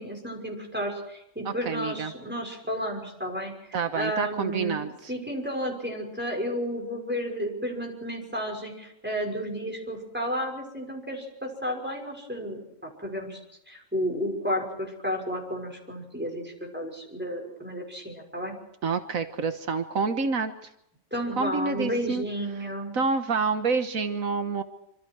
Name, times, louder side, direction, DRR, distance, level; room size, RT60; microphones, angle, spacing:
voice 1, 0.0-3.5 3.9-13.4 13.7-18.5 21.1-22.9, equal, 5° right, 1 dB, 6.0 m, -32 dB
voice 2, 1.4-2.1 3.7-5.1 18.8-20.5 21.4-22.2 22.9-24.6, right 4 dB, 85° right, 8 dB, 1.7 m, -28 dB
26.5 x 26.0 x 4.8 m, 0.79 s
omnidirectional pair, 1.4 m